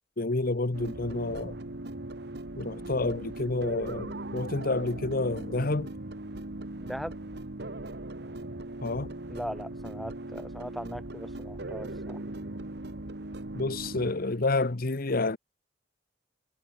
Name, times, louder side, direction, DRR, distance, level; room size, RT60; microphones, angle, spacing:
voice 1, 0.2-1.6 2.5-5.9 8.8-9.1 13.5-15.4, left 2 dB, 55° left, 1.1 m, -29 dB
sound 1, 0.7-14.1, right 2 dB, 65° right, 1.8 m, -39 dB
voice 2, 6.8-7.1 9.3-12.2, equal, ahead, 2.8 m, -39 dB
head